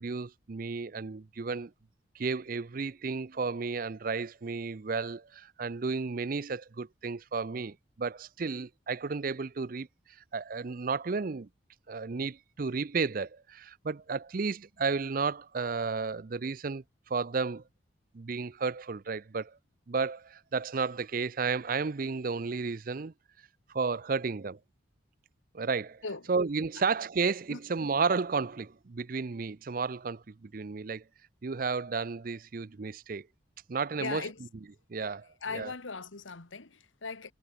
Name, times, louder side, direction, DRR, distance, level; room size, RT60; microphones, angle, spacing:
voice 1, 0.0-1.7 2.1-9.9 10.3-11.5 11.9-17.6 18.1-19.6 19.9-23.1 23.7-24.6 25.5-26.0 26.3-31.0 31.4-33.3 33.7-34.2 34.9-35.7, right 4 dB, 45° right, 0.5 m, -32 dB
voice 2, 34.0-34.4 35.4-37.3, left 4 dB, 90° left, 1.7 m, -38 dB
head